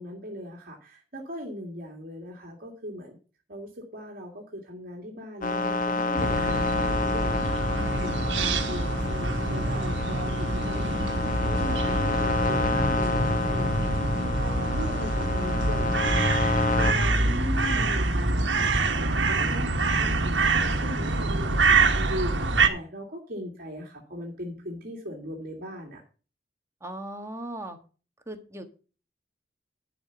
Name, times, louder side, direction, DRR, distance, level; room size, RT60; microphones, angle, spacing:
voice 1, 0.0-3.2 3.5-26.0, equal, 55° right, 0 dB, 2.2 m, -39 dB
sound 1, 5.4-16.9, left 3 dB, 50° left, 1.0 m, -29 dB
sound 2, 6.2-22.7, right 2 dB, 80° right, 1.4 m, -25 dB
voice 2, 17.1-18.0 26.8-27.8 28.3-28.6, equal, 15° right, 6 dB, 1.4 m, -36 dB
11.5 x 5.1 x 6.9 m, 0.36 s
head